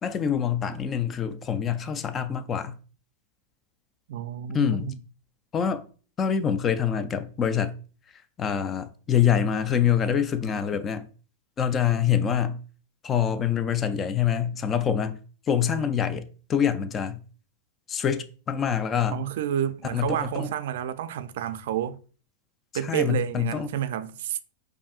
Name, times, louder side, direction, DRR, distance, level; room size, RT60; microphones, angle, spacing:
voice 1, 0.0-2.8 4.5-4.9 5.5-5.9 6.2-7.7 8.4-11.1 11.6-12.6 13.0-15.2 15.5-17.2 17.9-19.2 19.9-20.5 22.8-23.7, left 8 dB, 25° left, 0.3 m, -25 dB
voice 2, 4.1-5.0 19.1-22.0 22.7-24.4, right 10 dB, 70° right, 0.3 m, -30 dB
5.3 x 2.6 x 2.4 m
supercardioid pair, 135°, 0 cm